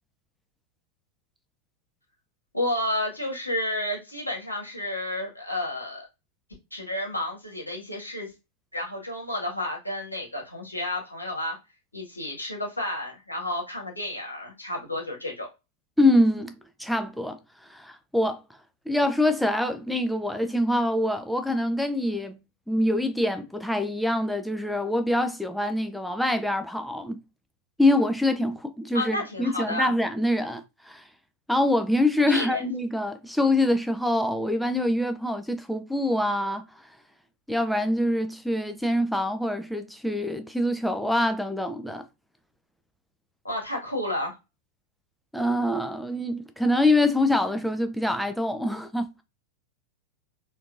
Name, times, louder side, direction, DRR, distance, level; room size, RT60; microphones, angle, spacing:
voice 1, 2.5-6.0 6.7-8.3 8.7-11.6 11.9-15.5 28.9-29.9 32.3-32.6 43.4-44.3, left 1 dB, 80° left, 1.5 m, -31 dB
voice 2, 16.0-16.5 16.8-17.4 17.7-18.4 18.9-22.4 22.7-27.2 27.8-31.0 31.5-36.6 37.5-42.0 45.3-49.1, left 1 dB, ahead, 0.5 m, -25 dB
4.4 x 2.8 x 2.5 m
figure-of-eight pair, 90°, 0 cm